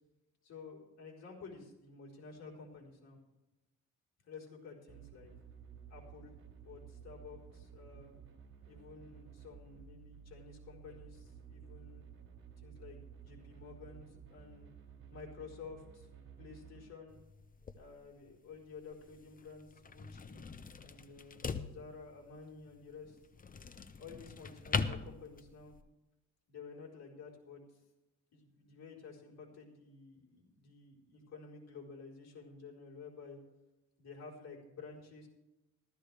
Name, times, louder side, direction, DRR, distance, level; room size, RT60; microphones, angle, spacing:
voice 1, 0.4-3.2 4.2-5.3 5.9-6.3 6.6-8.2 8.7-12.1 12.6-14.7 15.1-16.1 16.4-17.2 17.7-20.5 20.8-23.2 24.0-25.7 26.5-27.8 28.3-33.4 34.0-35.3, left 4 dB, 55° left, -2 dB, 4.3 m, -52 dB
sound 1, 4.9-16.9, right 7 dB, 45° right, 3.5 m, -54 dB
sound 2, 17.1-25.8, left 5 dB, 30° left, 0.8 m, -42 dB
15.0 x 13.5 x 3.4 m, 0.96 s
cardioid pair, 90°, 30 cm